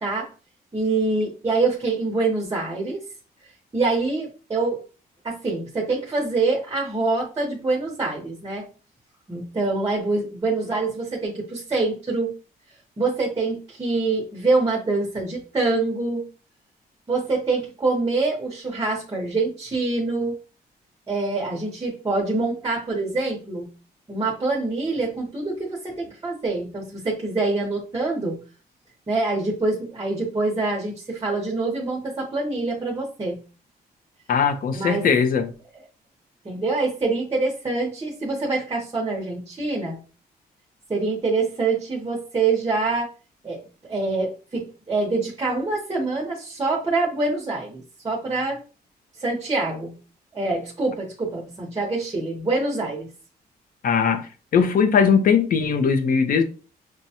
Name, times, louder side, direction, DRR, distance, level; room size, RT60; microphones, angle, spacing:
voice 1, 0.7-3.0 3.7-4.8 5.2-8.7 9.3-12.3 13.0-16.2 17.1-20.3 21.1-23.7 24.1-28.4 29.1-33.4 34.7-35.1 36.4-40.0 40.9-43.1 43.4-48.6 49.2-50.0 50.3-53.1, right 3 dB, 20° right, 0.9 m, -25 dB
voice 2, 34.3-35.5 53.8-56.4, left 6 dB, 60° left, 0.7 m, -20 dB
6.2 x 2.2 x 2.8 m
cardioid pair, 145°, 17 cm